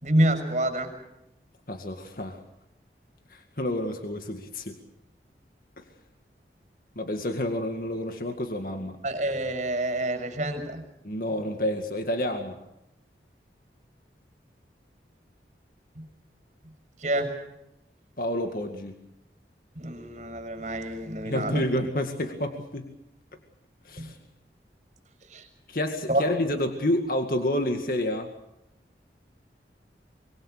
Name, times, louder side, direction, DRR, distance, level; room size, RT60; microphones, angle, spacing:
voice 1, 0.0-0.9 9.0-10.8 15.9-16.0 17.0-17.3 19.7-21.6 24.0-24.1 25.3-25.4 26.1-26.2, right 1 dB, 40° right, 6 dB, 6.2 m, -27 dB
voice 2, 1.7-2.4 3.3-4.8 5.8-5.9 7.0-9.0 11.0-12.6 18.2-19.0 21.3-22.9 23.9-24.2 25.7-28.3, left 1 dB, 55° left, 5 dB, 2.1 m, -29 dB
25.0 x 23.5 x 6.7 m, 0.84 s
head